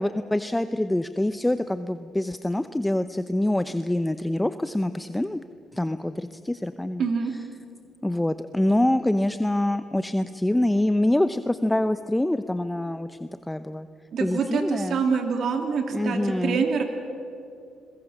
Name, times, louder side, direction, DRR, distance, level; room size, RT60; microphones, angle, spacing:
voice 1, 0.0-5.4 5.7-7.1 8.0-13.9 14.2-15.0 15.9-16.8, left 1 dB, 10° left, 11 dB, 0.7 m, -25 dB
voice 2, 7.0-7.3 14.1-16.8, right 5 dB, 65° right, 4 dB, 2.9 m, -25 dB
26.5 x 22.0 x 7.3 m, 2.6 s
cardioid pair, 90°, 0 cm